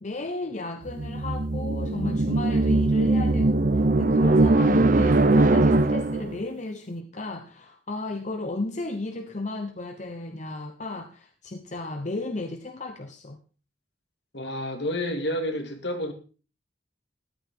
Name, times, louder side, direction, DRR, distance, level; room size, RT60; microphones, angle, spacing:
voice 1, 0.0-13.4, left 2 dB, 40° left, 1.0 m, -34 dB
sound 1, 0.9-6.4, right 2 dB, 45° right, 0.8 m, -21 dB
voice 2, 14.3-16.1, left 1 dB, 60° left, 2.3 m, -29 dB
14.0 x 12.0 x 3.7 m
head